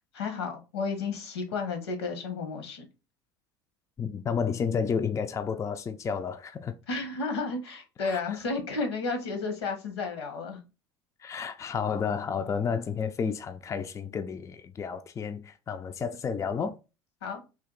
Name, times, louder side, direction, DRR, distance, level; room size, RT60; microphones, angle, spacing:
voice 1, 0.1-2.9 6.9-10.6 17.2-17.4, left 4 dB, 80° left, 1.1 m, -32 dB
voice 2, 4.0-6.8 8.0-8.4 11.2-16.8, left 6 dB, 25° left, 0.4 m, -31 dB
3.3 x 2.5 x 3.8 m
hypercardioid pair, 75°, 13 cm